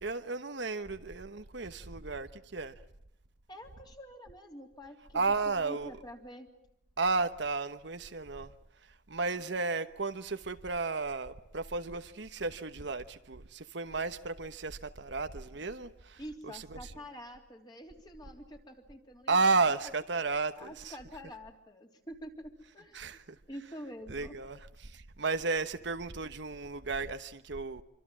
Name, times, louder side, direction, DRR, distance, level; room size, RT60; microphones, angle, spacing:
voice 1, 0.0-2.7 5.1-5.9 7.0-8.5 9.1-16.9 19.3-20.9 22.9-23.4 24.1-27.8, right 3 dB, 65° right, 1.1 m, -33 dB
voice 2, 3.5-6.5 16.2-19.4 20.6-23.0 23.5-24.4, equal, 20° left, 3.4 m, -47 dB
26.5 x 25.5 x 7.5 m
head